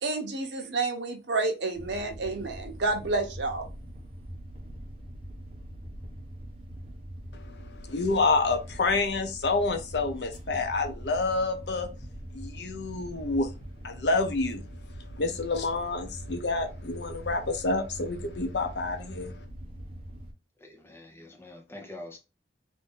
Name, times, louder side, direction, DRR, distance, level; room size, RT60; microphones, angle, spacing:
voice 1, 0.0-3.7, right 3 dB, 80° right, 0.8 m, -29 dB
sound 1, 1.7-20.3, equal, 35° right, 0.8 m, -42 dB
voice 2, 7.3-11.9 12.3-13.5 13.8-14.6 15.0-19.4, left 3 dB, 70° left, 0.7 m, -28 dB
voice 3, 20.6-22.2, left 1 dB, 15° left, 0.8 m, -45 dB
2.6 x 2.6 x 3.6 m
head